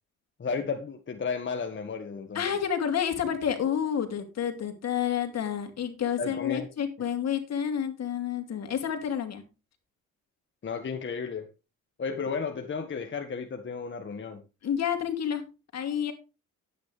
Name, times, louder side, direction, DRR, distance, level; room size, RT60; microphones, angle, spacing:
voice 1, 0.4-2.5 6.2-6.7 10.6-11.5 12.0-14.4, left 5 dB, 40° left, 5 dB, 1.6 m, -33 dB
voice 2, 2.3-9.4 14.6-15.4 15.7-16.1, left 8 dB, 60° left, 7 dB, 2.8 m, -29 dB
11.5 x 9.3 x 3.3 m, 0.29 s
cardioid pair, 90°, 30 cm